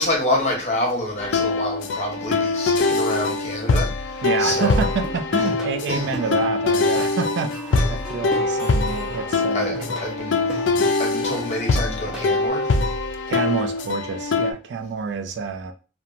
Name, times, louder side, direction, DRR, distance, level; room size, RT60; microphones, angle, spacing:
voice 1, 0.0-4.9 5.9-6.1 6.9-7.0 7.9-8.0 9.5-9.8 10.0-10.7 11.0-12.7, left 1 dB, 35° left, 0.8 m, -27 dB
sound 1, 1.2-14.5, left 3 dB, 75° left, 0.3 m, -23 dB
Plucked string instrument, 4.2-12.5, right 1 dB, 5° right, 0.6 m, -36 dB
voice 2, 4.2-9.9 13.3-15.7, right 5 dB, 65° right, 0.3 m, -28 dB
2.9 x 2.1 x 2.5 m
head